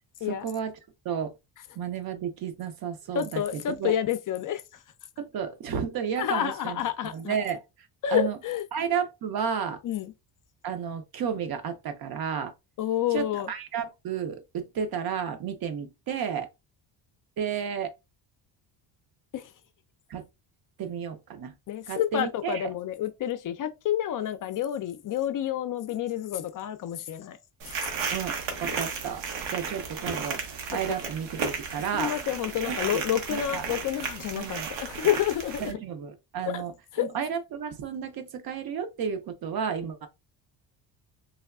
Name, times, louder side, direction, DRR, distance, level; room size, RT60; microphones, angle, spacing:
voice 1, 0.3-0.8 1.0-1.4 1.8-3.9 5.2-6.8 7.1-7.6 8.1-8.4 8.7-9.8 10.6-12.5 13.1-16.5 17.4-17.9 20.1-20.2 20.8-21.5 21.9-22.7 28.1-29.2 29.5-32.1 32.6-33.0 33.3-33.6 34.4-34.7 35.6-40.1, right 7 dB, 55° right, 0.7 m, -32 dB
voice 2, 3.1-4.6 6.2-7.4 8.0-8.6 9.8-10.1 12.8-13.5 19.3-19.5 21.7-27.4 31.9-35.8 36.5-36.6 36.9-37.1, left 11 dB, 45° left, 0.4 m, -29 dB
sound 1, 27.6-35.7, right 5 dB, 80° right, 0.9 m, -34 dB
3.4 x 2.2 x 2.3 m
cardioid pair, 90°, 44 cm